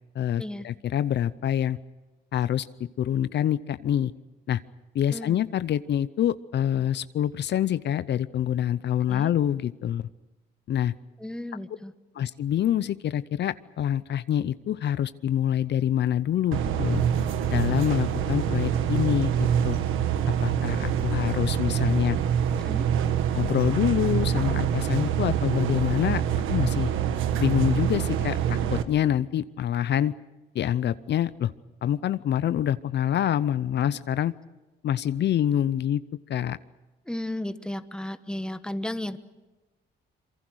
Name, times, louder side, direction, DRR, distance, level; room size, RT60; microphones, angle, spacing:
voice 1, 0.1-1.8 2.3-2.7 3.0-4.1 4.5-4.6 4.9-10.1 10.7-10.9 12.1-17.0 17.5-19.8 20.4-22.2 23.3-26.2 26.5-26.9 27.4-30.1 30.5-31.5 31.8-34.3 34.8-36.0 36.3-36.6, left 10 dB, 60° left, 15 dB, 0.7 m, -26 dB
voice 2, 11.2-11.9 22.5-22.9 37.1-39.2, left 1 dB, 5° left, 11 dB, 1.3 m, -34 dB
sound 1, 16.5-28.8, right 9 dB, 85° right, 1.4 m, -25 dB
26.5 x 24.0 x 6.4 m, 1.1 s
cardioid pair, 90°, 20 cm